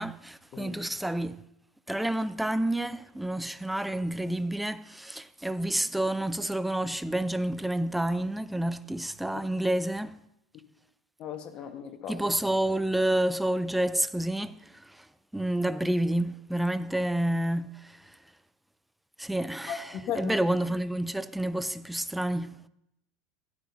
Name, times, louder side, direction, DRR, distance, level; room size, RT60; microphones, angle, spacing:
voice 1, 0.0-1.4 1.9-10.1 12.1-15.0 15.3-18.0 19.2-22.6, right 1 dB, 5° right, 0.5 m, -29 dB
voice 2, 11.2-12.3 19.7-20.4, left 8 dB, 40° left, 1.2 m, -36 dB
15.0 x 11.5 x 2.7 m
figure-of-eight pair, 80°, 2 cm